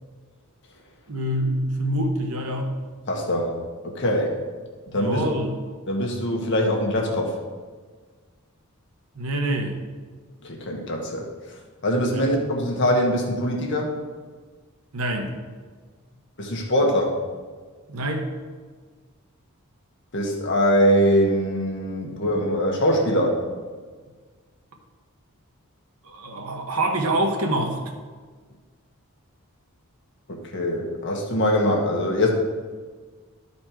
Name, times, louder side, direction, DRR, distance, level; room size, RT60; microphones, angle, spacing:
voice 1, 1.1-2.7 4.9-5.6 9.1-9.8 12.1-12.2 14.9-15.4 17.9-18.3 22.0-22.2 26.0-27.8, right 1 dB, 75° right, 4 dB, 1.0 m, -26 dB
voice 2, 3.1-3.5 3.8-4.3 4.9-5.2 5.9-7.3 10.4-11.2 11.8-13.9 16.4-17.1 20.1-23.4 30.3-32.3, equal, 55° left, 1 dB, 1.3 m, -22 dB
11.5 x 4.3 x 4.5 m, 1.5 s
head